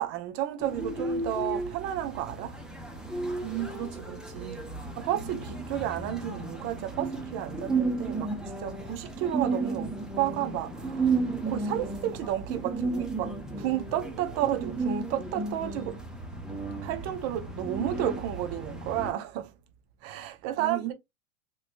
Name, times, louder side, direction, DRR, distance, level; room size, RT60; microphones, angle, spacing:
voice 1, 0.0-2.6 5.0-8.3 8.6-16.0 16.8-19.5 20.0-20.9, right 12 dB, 40° right, 0.7 m, -32 dB
sound 1, 0.6-19.1, right 3 dB, ahead, 0.5 m, -33 dB
voice 2, 3.4-4.7 20.6-20.9, right 13 dB, 85° right, 1.9 m, -36 dB
3.0 x 3.0 x 2.5 m
hypercardioid pair, 125°, 39 cm